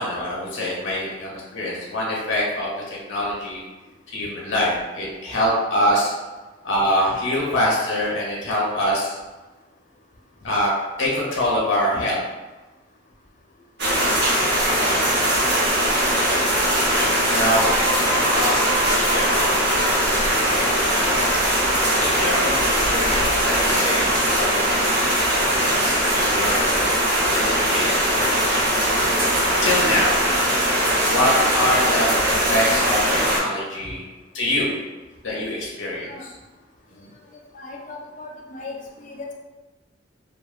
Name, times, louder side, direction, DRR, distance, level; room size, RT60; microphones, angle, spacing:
voice 1, 0.0-3.6 4.1-6.1 6.6-9.2 10.4-10.7 11.0-12.2 17.3-17.7 18.3-18.6 18.9-20.9 22.0-25.1 25.6-26.8 27.3-28.0 29.6-30.1 31.1-34.0 34.3-34.7 35.2-36.3 37.0-37.1, left 1 dB, 85° left, -4 dB, 0.6 m, -25 dB
sound 1, 13.8-33.4, equal, 60° right, 0.8 m, -20 dB
sound 2, 16.4-21.9, right 2 dB, 30° right, 0.8 m, -32 dB
voice 2, 37.5-39.3, left 3 dB, 40° left, 0 dB, 0.4 m, -37 dB
2.7 x 2.1 x 2.3 m, 1.2 s
head